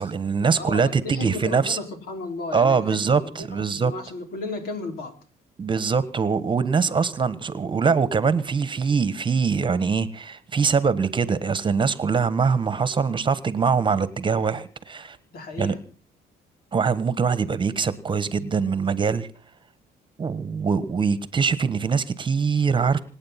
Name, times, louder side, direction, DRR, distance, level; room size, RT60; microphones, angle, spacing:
voice 1, 0.0-1.8 2.5-3.9 5.6-15.2 15.6-15.7 16.7-19.3 20.2-23.0, right 5 dB, 30° right, 15 dB, 1.4 m, -23 dB
voice 2, 0.5-5.2 15.3-15.8, left 3 dB, 65° left, 6 dB, 4.4 m, -34 dB
26.5 x 9.0 x 5.9 m, 0.40 s
cardioid pair, 110°, 17 cm